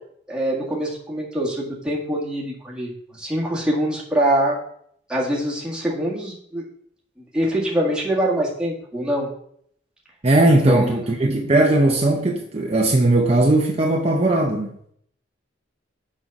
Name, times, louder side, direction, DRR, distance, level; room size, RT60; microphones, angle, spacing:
voice 1, 0.3-4.6 5.1-6.6 7.3-9.3 10.7-11.0, right 1 dB, 5° right, -4 dB, 1.8 m, -24 dB
voice 2, 10.2-14.7, right 2 dB, 35° right, 1 dB, 0.7 m, -18 dB
6.1 x 5.5 x 5.9 m, 0.66 s
head